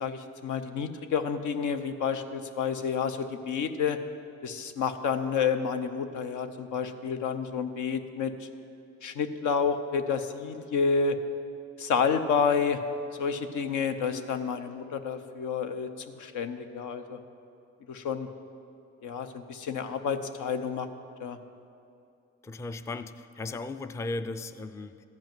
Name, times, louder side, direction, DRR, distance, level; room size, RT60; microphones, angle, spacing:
voice 1, 0.0-4.0 4.4-8.3 9.0-11.2 11.8-12.8 13.2-17.2 17.9-18.3 19.0-20.9 21.2-21.4, left 6 dB, 80° left, 8 dB, 0.8 m, -29 dB
voice 2, 22.4-25.0, left 2 dB, 10° left, 10 dB, 0.3 m, -36 dB
14.0 x 5.4 x 9.0 m, 2.6 s
cardioid pair, 90°, 30 cm